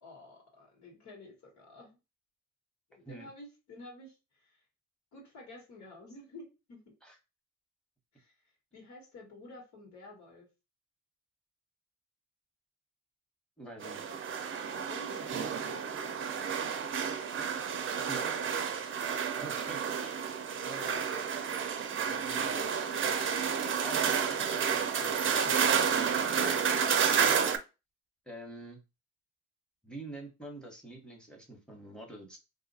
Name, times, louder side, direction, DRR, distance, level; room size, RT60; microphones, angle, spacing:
voice 1, 0.0-2.0 3.0-4.6 5.1-6.8 8.1-8.3 8.7-10.5 14.1-14.2 14.7-15.4 22.1-22.5, left 2 dB, 70° left, 0 dB, 1.7 m, -51 dB
voice 2, 13.6-14.0 18.0-18.6 19.4-20.2 20.6-21.1 22.0-22.7 23.8-24.3 24.5-27.4 28.3-28.8 29.8-32.4, right 1 dB, 5° left, 2 dB, 1.2 m, -46 dB
sound 1, 13.8-27.6, right 7 dB, 40° right, 0.6 m, -30 dB
2.6 x 2.4 x 4.0 m, 0.28 s
cardioid pair, 90°, 30 cm